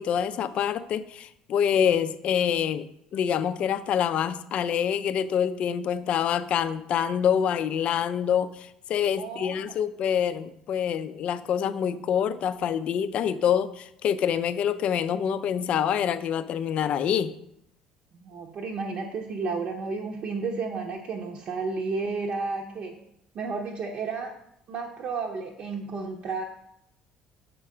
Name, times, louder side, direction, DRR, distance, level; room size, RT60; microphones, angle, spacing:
voice 1, 0.0-17.4, left 8 dB, 45° left, 12 dB, 0.4 m, -26 dB
voice 2, 9.2-9.7 18.2-23.0 23.3-24.3 24.7-26.4, right 4 dB, 45° right, 0 dB, 0.8 m, -32 dB
6.4 x 4.5 x 6.1 m, 0.75 s
figure-of-eight pair, 55°, 3 cm